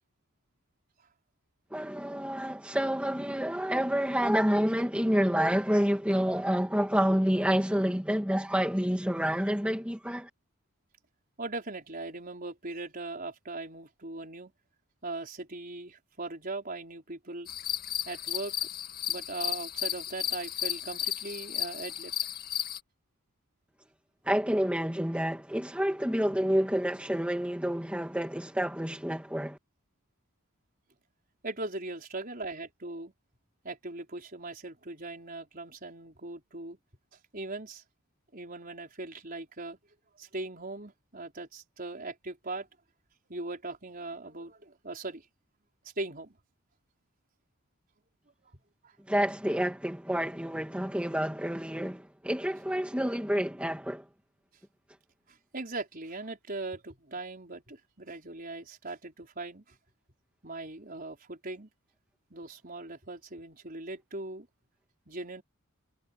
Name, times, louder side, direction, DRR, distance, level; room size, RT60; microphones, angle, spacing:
voice 1, 1.7-10.3 24.2-29.6 49.1-54.1, equal, 5° right, 2.4 m, -28 dB
voice 2, 11.4-14.5 15.0-17.5 18.1-18.7 19.1-22.1 31.4-33.1 33.6-36.8 37.3-37.8 38.3-39.8 40.2-42.7 43.3-45.2 46.0-46.4 48.8-49.0 55.3-59.8 60.4-61.7 62.3-64.5 65.1-65.4, right 2 dB, 40° right, 5.2 m, -39 dB
sound 1, 17.5-22.8, left 11 dB, 45° left, 1.9 m, -34 dB
head